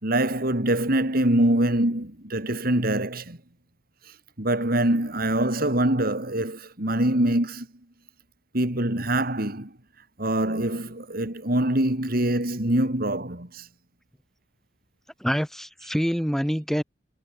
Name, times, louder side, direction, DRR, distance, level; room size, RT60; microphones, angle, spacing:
voice 1, 0.0-3.4 4.4-7.7 8.5-9.7 10.2-13.7, right 1 dB, 50° right, 3.7 m, -24 dB
voice 2, 15.2-16.8, equal, ahead, 7.2 m, -26 dB
head